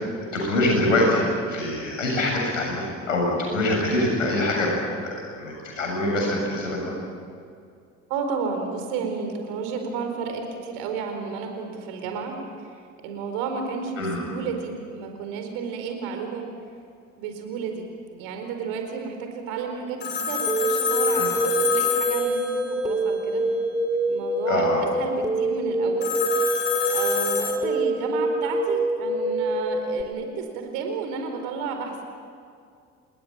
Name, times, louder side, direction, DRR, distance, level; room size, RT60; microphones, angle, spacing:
voice 1, 0.3-4.7 5.0-6.9 14.0-14.2 21.1-21.3 24.5-24.8, left 1 dB, 80° left, 0 dB, 7.5 m, -24 dB
voice 2, 8.1-16.5 17.2-17.9 18.2-23.4 24.1-26.1 26.9-32.0, right 5 dB, 65° right, 4 dB, 4.6 m, -32 dB
Telephone, 20.0-23.1 26.0-27.5, left 6 dB, 25° left, 5.6 m, -27 dB
sound 1, 20.5-30.0, right 1 dB, 10° right, 3.7 m, -25 dB
28.0 x 20.5 x 9.0 m, 2.3 s
figure-of-eight pair, 55°, 38 cm